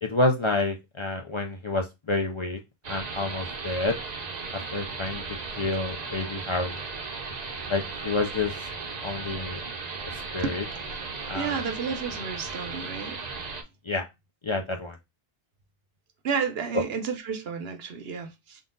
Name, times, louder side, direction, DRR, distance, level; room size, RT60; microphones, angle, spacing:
voice 1, 0.0-2.6 2.9-4.0 4.5-5.2 5.6-6.8 7.7-8.6 9.0-9.6 10.3-10.6 11.3-11.6 13.8-14.0 14.4-15.0 16.7-16.8, left 2 dB, 45° left, 0.4 m, -28 dB
sound 1, 2.8-13.6, right 4 dB, 45° right, 0.7 m, -36 dB
voice 2, 11.3-13.2 16.2-18.6, right 6 dB, 75° right, 0.9 m, -31 dB
3.8 x 2.4 x 3.7 m
omnidirectional pair, 1.1 m